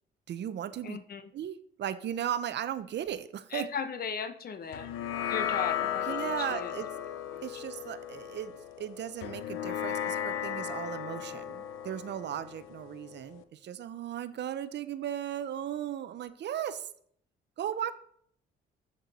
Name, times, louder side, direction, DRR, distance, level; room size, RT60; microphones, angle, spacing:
voice 1, 0.3-1.0 1.3-3.7 6.1-6.9 7.4-16.9 17.6-17.9, right 10 dB, 60° right, 13 dB, 0.7 m, -36 dB
voice 2, 0.8-1.2 3.5-4.9 5.3-6.7 7.3-7.4, left 6 dB, 50° left, 11 dB, 0.9 m, -37 dB
sound 1, 4.7-13.4, left 10 dB, 90° left, 0.6 m, -36 dB
7.6 x 6.6 x 4.2 m, 0.63 s
cardioid pair, 90°, 20 cm